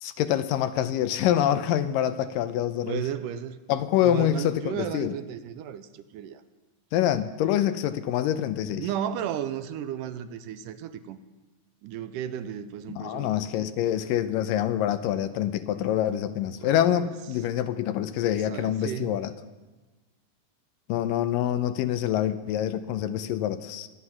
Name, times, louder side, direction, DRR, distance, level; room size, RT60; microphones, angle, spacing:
voice 1, 0.0-3.0 3.7-5.2 6.9-8.9 13.0-19.3 20.9-23.9, left 11 dB, 85° left, 11 dB, 2.4 m, -26 dB
voice 2, 2.9-3.6 4.0-6.4 8.8-11.2 11.8-13.3 16.6-17.1 18.5-19.1, right 10 dB, 80° right, 11 dB, 2.2 m, -34 dB
24.0 x 9.8 x 5.9 m, 1.2 s
omnidirectional pair, 3.9 m